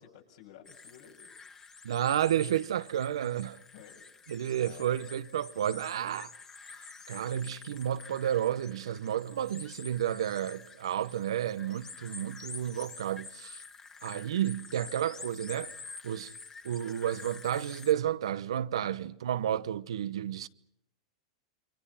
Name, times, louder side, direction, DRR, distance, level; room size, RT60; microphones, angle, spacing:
voice 1, 0.0-1.3 3.7-4.0 4.5-5.0 11.8-12.2 18.8-18.9, left 9 dB, 70° left, 7.3 m, -54 dB
sound 1, 0.6-17.9, left 4 dB, 20° left, 2.0 m, -48 dB
voice 2, 1.8-3.6 4.3-6.3 7.1-13.6 14.0-15.7 16.0-16.3 16.6-20.5, right 10 dB, 85° right, 1.0 m, -31 dB
28.5 x 24.5 x 5.7 m
hypercardioid pair, 120°, 3 cm